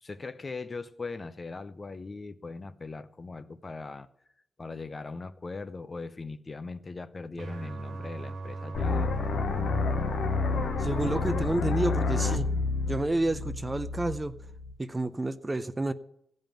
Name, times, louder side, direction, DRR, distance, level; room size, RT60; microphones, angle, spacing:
voice 1, 0.0-4.1 4.6-9.2, left 3 dB, 30° left, 0.6 m, -40 dB
sound 1, 7.4-11.4, right 3 dB, 65° right, 1.5 m, -39 dB
sound 2, 8.7-14.7, left 3 dB, 75° left, 0.9 m, -29 dB
voice 2, 10.7-12.5 12.9-14.3 14.8-15.9, right 2 dB, 20° right, 0.5 m, -30 dB
15.0 x 5.3 x 9.1 m
wide cardioid pair, 120°, 0 cm